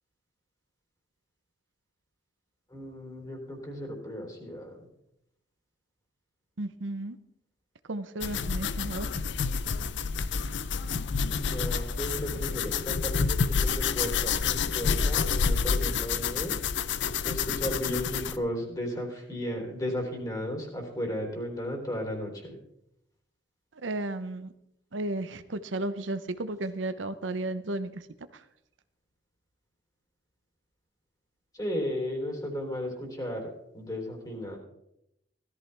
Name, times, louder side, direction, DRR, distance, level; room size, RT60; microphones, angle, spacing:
voice 1, 2.7-4.9 11.2-16.6 17.2-22.6 31.5-34.6, equal, 20° left, 1 dB, 3.6 m, -35 dB
voice 2, 6.6-7.2 7.9-9.2 23.8-24.5 24.9-28.0, right 2 dB, 80° right, 11 dB, 0.8 m, -33 dB
sound 1, 8.2-18.4, left 5 dB, 65° left, 0.6 m, -28 dB
17.0 x 13.5 x 3.4 m, 0.82 s
head